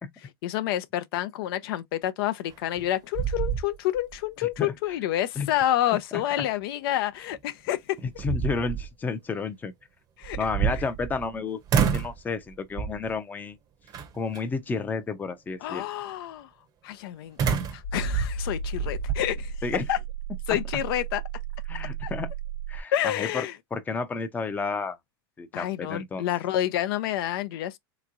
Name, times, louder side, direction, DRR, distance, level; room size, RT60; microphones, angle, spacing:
voice 1, 0.2-8.0 10.2-10.4 10.7-10.9 15.6-16.5 16.8-19.5 19.9-20.0 20.5-21.2 22.0-22.1 22.9-23.5 25.5-27.8, left 13 dB, 65° left, 0.5 m, -28 dB
sound 1, 2.5-2.9 3.1-4.2 4.5-4.6 7.3-7.4 8.0-8.9 10.2-11.3 11.7-12.2 12.8-13.1 13.9-14.4 17.4-19.2, right 8 dB, 30° right, 0.8 m, -28 dB
voice 2, 8.2-9.7 10.4-13.6 14.1-15.9 19.6-19.8 20.5-20.6 21.7-22.3 22.7-23.5 23.7-25.0 25.4-26.3, left 4 dB, 15° left, 0.6 m, -31 dB
sound 2, 17.8-22.8, right 4 dB, 90° left, 0.9 m, -34 dB
3.5 x 3.0 x 2.5 m
supercardioid pair, 135°, 13 cm